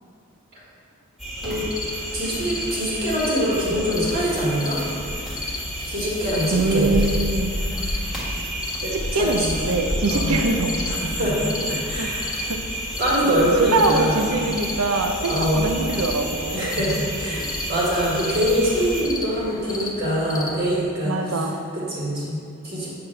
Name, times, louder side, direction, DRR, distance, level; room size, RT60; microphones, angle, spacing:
sound 1, 1.2-19.0, equal, ahead, 1.6 m, -30 dB
sound 2, 1.7-20.8, left 3 dB, 15° left, 0.5 m, -36 dB
voice 1, 2.1-4.8 5.9-6.9 8.8-9.5 10.0-10.4 10.9-12.4 13.0-14.2 15.3-15.6 16.5-22.9, equal, 45° right, -7 dB, 1.9 m, -24 dB
voice 2, 6.5-7.6 9.1-11.1 12.0-12.6 12.9-13.0 13.7-16.7 21.0-21.6, right 2 dB, 90° right, 5 dB, 0.7 m, -24 dB
8.7 x 5.8 x 3.3 m, 2.4 s
head